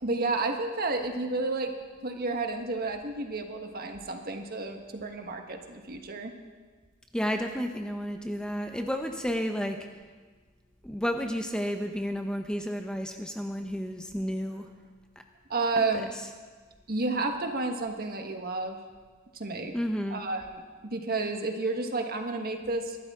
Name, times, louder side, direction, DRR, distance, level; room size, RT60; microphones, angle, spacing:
voice 1, 0.0-1.7 2.0-6.3 15.5-16.1 16.9-18.8 19.3-19.7 20.1-20.6 20.9-23.0, right 3 dB, 45° right, 4 dB, 1.4 m, -31 dB
voice 2, 7.1-9.8 10.8-14.6 15.8-16.0 19.7-20.2, equal, 5° left, 4 dB, 0.7 m, -31 dB
24.0 x 12.5 x 3.7 m, 1.4 s
head